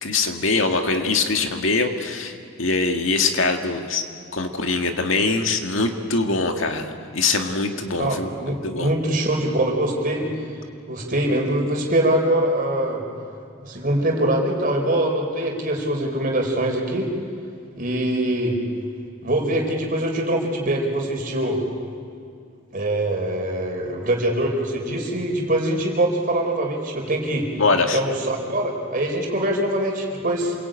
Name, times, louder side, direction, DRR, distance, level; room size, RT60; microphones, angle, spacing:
voice 1, 0.0-4.0 4.3-8.9 27.6-28.0, left 3 dB, 70° left, 5 dB, 2.0 m, -23 dB
voice 2, 8.0-10.3 10.9-13.0 13.6-17.1 17.8-18.6 19.2-21.6 22.7-27.4 27.9-30.5, right 1 dB, 40° right, 1 dB, 4.6 m, -23 dB
28.0 x 22.0 x 9.1 m, 2.4 s
head